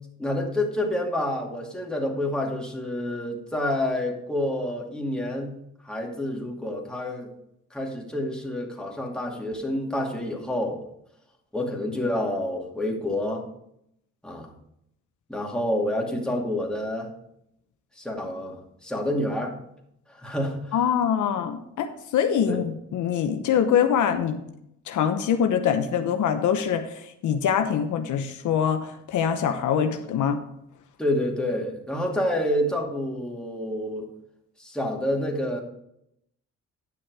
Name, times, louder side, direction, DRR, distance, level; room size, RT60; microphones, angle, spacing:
voice 1, 0.2-5.5 5.8-7.3 7.7-10.8 11.5-13.5 14.2-14.5 15.3-17.1 18.0-19.6 20.1-20.8 22.5-22.6 31.0-34.1 34.6-35.6, left 1 dB, 5° left, -1 dB, 2.3 m, -28 dB
voice 2, 20.7-24.4 24.9-26.9 27.2-30.4, left 8 dB, 75° left, 7 dB, 0.9 m, -24 dB
10.5 x 6.2 x 4.7 m, 0.76 s
cardioid pair, 90°, 30 cm